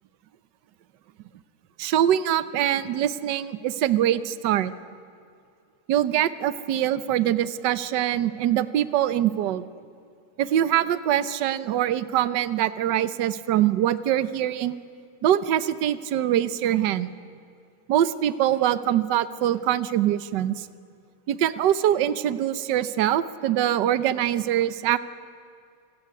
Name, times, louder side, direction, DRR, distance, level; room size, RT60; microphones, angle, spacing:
voice 1, 1.8-4.7 5.9-9.7 10.4-14.8 15.2-17.1 17.9-20.7 21.3-25.0, right 11 dB, 60° right, 14 dB, 1.4 m, -23 dB
29.0 x 19.0 x 9.6 m, 2.4 s
omnidirectional pair, 2.4 m